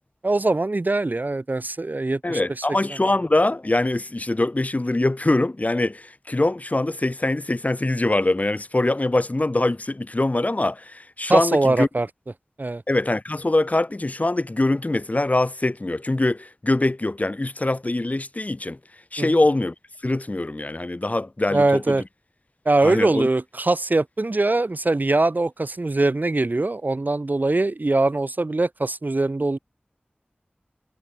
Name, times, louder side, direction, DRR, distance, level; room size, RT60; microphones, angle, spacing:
voice 1, 0.2-2.4 11.3-12.1 12.6-12.8 19.2-19.4 21.5-22.0 22.6-29.6, right 2 dB, 55° right, 2.9 m, -22 dB
voice 2, 2.2-11.9 12.9-18.8 19.1-19.7 20.0-22.0 22.8-23.3, left 2 dB, 45° left, 4.4 m, -23 dB
wide cardioid pair, 55°, 4 cm